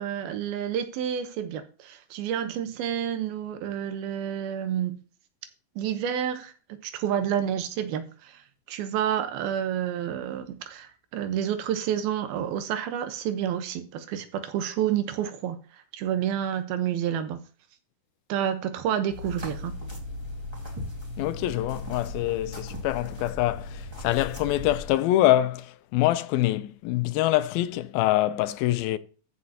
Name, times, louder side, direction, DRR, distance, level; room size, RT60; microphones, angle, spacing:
voice 1, 0.0-5.0 5.8-8.4 8.7-15.6 15.9-17.4 18.3-19.7, right 9 dB, 85° right, 2.8 m, -29 dB
sound 1, 19.1-24.9, left 2 dB, 10° right, 1.3 m, -37 dB
voice 2, 21.2-29.0, left 15 dB, 85° left, 2.4 m, -25 dB
14.0 x 6.4 x 2.8 m
omnidirectional pair, 4.3 m